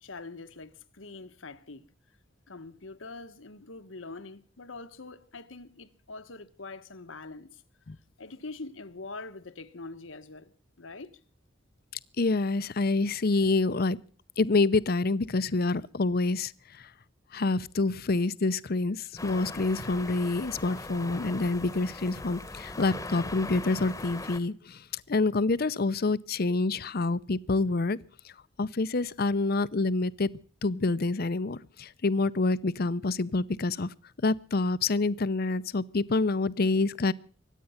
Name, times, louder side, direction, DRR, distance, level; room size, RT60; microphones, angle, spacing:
voice 1, 0.0-1.8 2.5-7.6 8.2-10.5 10.8-11.1, left 3 dB, 85° left, 1.3 m, -44 dB
voice 2, 12.2-14.0 14.4-16.5 17.3-28.0 28.2-28.3 28.6-30.3 30.6-33.9 34.2-37.1, left 3 dB, 50° left, 0.7 m, -27 dB
sound 1, 19.2-24.4, left 2 dB, 15° left, 1.2 m, -40 dB
24.0 x 9.2 x 5.7 m
head